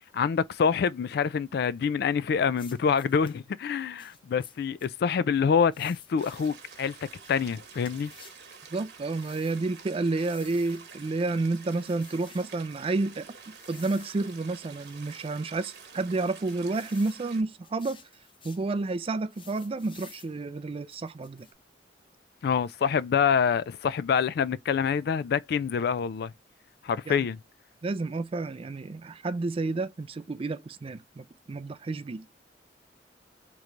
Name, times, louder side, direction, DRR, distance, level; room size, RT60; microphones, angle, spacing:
voice 1, 0.1-7.0 7.3-8.1 22.4-26.3 26.8-27.4, left 6 dB, 60° left, 0.3 m, -26 dB
sound 1, 2.5-3.4 4.0-4.9 5.7-6.6 7.2-8.4 9.1-9.6 10.1-10.9 11.6-12.6 13.6-14.4 14.8-15.4 16.0-17.2 17.6-18.7 19.3-20.3 20.9-21.5, left 5 dB, 30° left, 0.8 m, -53 dB
sound 2, 6.2-17.4, right 6 dB, 70° right, 1.1 m, -49 dB
voice 2, 8.7-18.0 18.4-21.5 27.1-27.3 27.8-32.3, right 3 dB, 35° right, 0.4 m, -30 dB
3.8 x 3.1 x 3.2 m
head